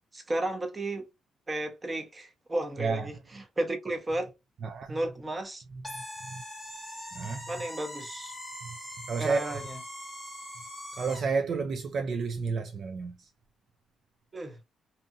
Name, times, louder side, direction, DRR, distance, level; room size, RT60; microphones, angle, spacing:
voice 1, 0.1-1.0 1.5-4.3 4.9-5.6 7.5-8.3 9.2-9.8 14.3-14.6, right 1 dB, 25° right, 0.8 m, -33 dB
voice 2, 2.8-3.1 4.6-5.0 5.7-6.4 7.1-7.4 8.6-8.8 9.1-9.4 10.9-13.3, right 4 dB, 55° right, 0.3 m, -31 dB
sound 1, 5.8-11.4, left 1 dB, ahead, 1.2 m, -42 dB
2.8 x 2.6 x 2.2 m
cardioid pair, 90°, 0 cm